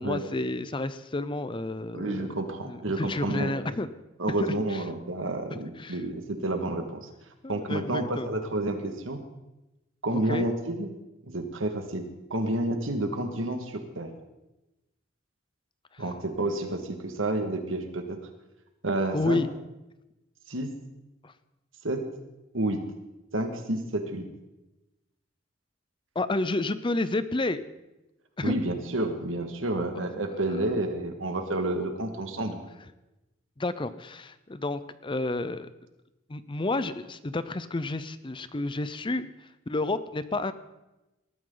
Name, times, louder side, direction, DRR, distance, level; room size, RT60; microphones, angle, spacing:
voice 1, 0.0-3.9 4.4-4.8 5.5-6.0 7.4-8.3 10.1-10.5 15.9-16.0 19.1-19.5 21.2-21.3 26.1-27.6 28.4-28.5 30.5-30.6 33.6-35.7 36.3-39.3 39.7-40.5, left 2 dB, 25° left, 13 dB, 0.6 m, -30 dB
voice 2, 1.9-3.5 4.2-7.1 7.5-9.2 10.0-10.9 11.3-14.1 16.0-18.2 18.8-19.4 20.5-20.7 21.8-22.1 22.5-22.8 23.3-24.3 28.4-32.6, right 1 dB, 85° right, 5 dB, 1.9 m, -30 dB
20.0 x 13.5 x 3.9 m, 0.99 s
head